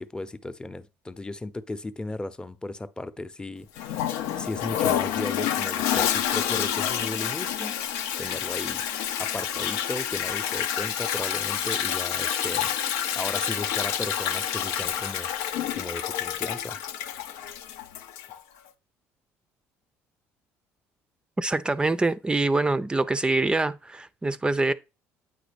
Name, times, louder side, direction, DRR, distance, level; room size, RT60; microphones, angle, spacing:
voice 1, 0.0-3.9 4.4-7.8 8.2-8.8 9.2-12.7 13.2-15.3 15.7-16.8, left 2 dB, 15° left, 0.8 m, -35 dB
Toilet flush, 3.8-18.4, left 10 dB, 85° left, 0.8 m, -28 dB
voice 2, 21.4-24.7, right 2 dB, 15° right, 0.5 m, -25 dB
8.8 x 3.9 x 5.2 m
supercardioid pair, 80°, 6 cm